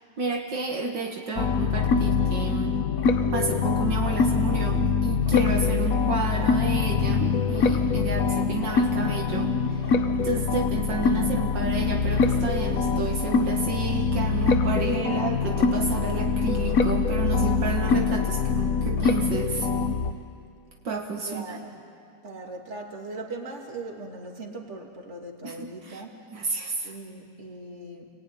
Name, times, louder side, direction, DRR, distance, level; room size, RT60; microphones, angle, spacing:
voice 1, 0.2-2.7 3.3-10.0 10.2-19.7 20.8-21.6 25.4-26.0 26.3-26.9, right 4 dB, 70° right, 1 dB, 2.2 m, -31 dB
sound 1, 1.4-20.1, left 5 dB, 55° left, 1.3 m, -24 dB
voice 2, 21.3-21.8 22.2-26.2 26.8-28.1, right 2 dB, 35° right, 1 dB, 2.8 m, -39 dB
28.5 x 21.0 x 9.6 m, 2.5 s
omnidirectional pair, 2.1 m